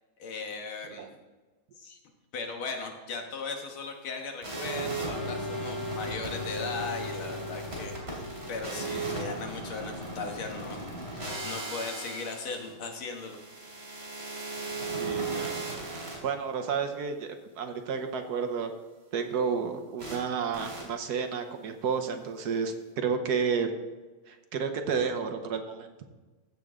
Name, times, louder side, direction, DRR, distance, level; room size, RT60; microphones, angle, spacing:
voice 1, 0.2-1.1 1.8-2.0 2.3-10.8 11.1-13.4, left 4 dB, 80° left, 3 dB, 2.2 m, -38 dB
sound 1, 4.4-16.2 20.0-20.2 20.5-20.8, right 2 dB, 30° right, 3.3 m, -36 dB
voice 2, 15.0-15.8 16.2-17.3 17.6-18.7 19.1-23.7 24.3-25.9, right 6 dB, 60° right, 6 dB, 1.2 m, -31 dB
15.5 x 6.7 x 3.7 m, 1.3 s
omnidirectional pair, 2.3 m